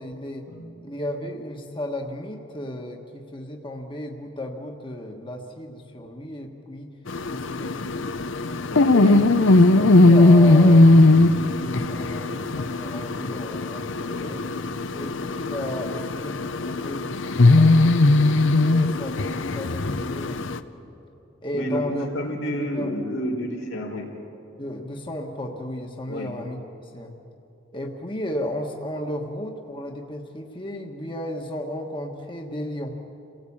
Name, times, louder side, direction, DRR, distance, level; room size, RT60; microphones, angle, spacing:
voice 1, 0.0-0.5 0.8-7.0 7.3-8.3 8.9-14.4 14.9-18.2 18.5-20.4 21.4-22.1 22.4-22.9 24.6-27.1 27.7-33.0, left 1 dB, 25° left, 2 dB, 1.5 m, -34 dB
sound 1, 7.1-20.6, left 2 dB, 70° left, 0.8 m, -19 dB
voice 2, 8.7-9.2 14.1-14.3 15.0-15.1 21.5-24.1 26.1-26.3, equal, 85° left, 1 dB, 4.0 m, -30 dB
27.5 x 17.5 x 8.7 m, 2.9 s
head